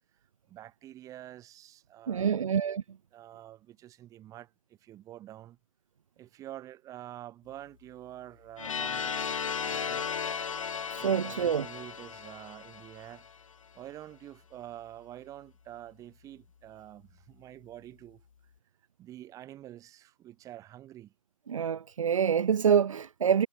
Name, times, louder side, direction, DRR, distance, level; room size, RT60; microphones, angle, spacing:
voice 1, 0.5-2.5 3.1-4.5 4.8-5.6 6.2-10.2 10.9-13.3 13.7-18.2 19.0-21.1, right 13 dB, 15° right, 4.7 m, -47 dB
voice 2, 2.1-2.8 10.9-11.7 21.5-23.5, right 7 dB, 60° right, 0.7 m, -26 dB
sound 1, 8.6-13.4, left 7 dB, 60° left, 2.4 m, -35 dB
figure-of-eight pair, 135°, 19 cm